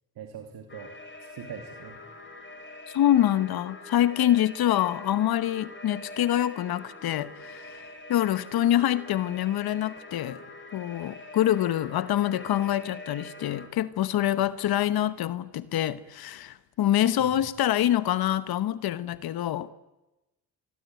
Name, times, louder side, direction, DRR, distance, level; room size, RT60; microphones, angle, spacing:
voice 1, 0.2-2.0 17.2-17.4, right 8 dB, 80° right, 4 dB, 2.5 m, -43 dB
sound 1, 0.7-13.7, left 2 dB, 30° left, 6.4 m, -44 dB
voice 2, 2.9-10.4 10.7-19.7, left 12 dB, 75° left, 15 dB, 1.1 m, -26 dB
26.0 x 21.5 x 9.4 m, 1.0 s
cardioid pair, 65°, 37 cm